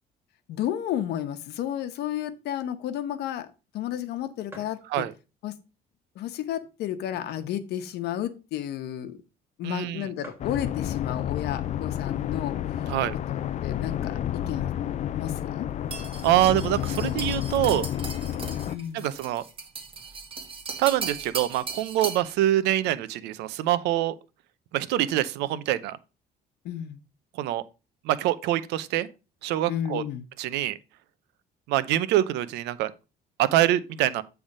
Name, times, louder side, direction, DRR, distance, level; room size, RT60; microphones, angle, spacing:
voice 1, 0.5-3.5 3.7-5.0 5.4-5.6 6.1-9.2 9.6-12.6 13.3-14.7 15.1-15.7 18.7-19.2 26.6-27.0 29.7-30.2, left 11 dB, 80° left, 1.0 m, -32 dB
sound 1, 4.5-4.9 5.5-5.6 6.4-7.6 7.9-8.0 8.2-8.5 9.2-9.3 9.6-9.7 9.9-10.0 10.2-10.6 11.5-11.8 12.4-12.5 12.7-13.5, right 2 dB, 10° right, 2.9 m, -50 dB
voice 2, 9.6-10.1 12.9-13.1 16.2-17.9 18.9-19.4 20.8-24.1 24.7-26.0 27.4-27.6 28.0-29.1 29.4-30.0 30.4-30.8 31.7-32.9 33.4-34.2, right 13 dB, 90° right, 0.7 m, -25 dB
sound 2, 10.4-18.8, left 11 dB, 45° left, 0.5 m, -30 dB
sound 3, 15.9-22.3, right 4 dB, 30° right, 1.9 m, -37 dB
8.8 x 3.5 x 5.3 m
cardioid pair, 110°, 17 cm